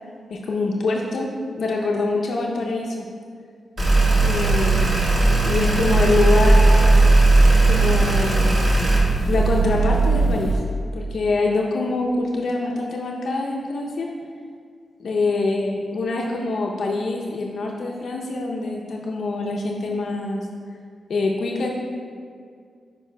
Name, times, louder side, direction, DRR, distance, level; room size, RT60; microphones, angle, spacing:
voice 1, 0.3-3.0 4.2-5.0 5.5-6.8 7.7-8.6 9.3-10.6 10.9-14.1 15.0-20.5 21.1-21.7, left 3 dB, 65° left, -2 dB, 0.6 m, -24 dB
sound 1, 3.8-10.5, right 3 dB, 10° left, 1.0 m, -17 dB
sound 2, 3.8-9.0, equal, 45° right, 1.5 m, -25 dB
10.0 x 5.3 x 2.2 m, 2.2 s
wide cardioid pair, 120°, 0 cm